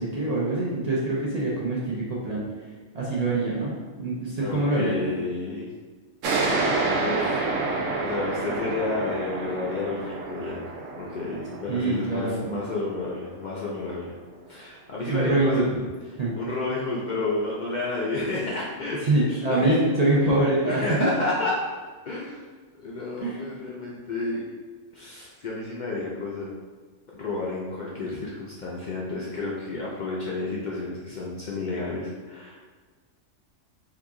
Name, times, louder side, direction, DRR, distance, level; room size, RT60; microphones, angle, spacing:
voice 1, 0.0-2.4 2.9-5.0 11.7-12.6 15.1-15.6 16.2-16.4 19.0-20.8 23.2-23.4, right 2 dB, 55° right, -6 dB, 0.4 m, -24 dB
voice 2, 4.4-5.7 6.9-7.5 8.0-10.6 10.9-14.1 14.5-15.7 16.4-19.9 20.2-20.4 20.6-21.6 22.0-22.5 22.7-24.4 24.9-26.5 27.1-32.6, left 3 dB, 65° left, -5 dB, 0.4 m, -31 dB
sound 1, 6.2-13.4, right 3 dB, 80° right, 1.0 m, -29 dB
2.8 x 2.4 x 3.5 m, 1.4 s
omnidirectional pair, 1.3 m